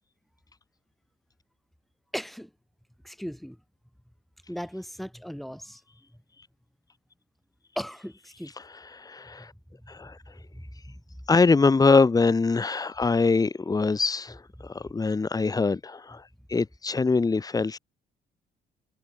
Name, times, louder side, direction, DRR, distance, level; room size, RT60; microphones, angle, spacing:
voice 1, 2.1-2.5 3.0-3.6 4.5-5.8 7.8-8.6 9.4-9.5 9.7-9.9 10.5-11.0, equal, ahead, 7.7 m, -37 dB
voice 2, 8.9-9.5 9.9-10.2 11.3-17.8, left 4 dB, 20° left, 4.4 m, -23 dB
cardioid pair, 110°, 17 cm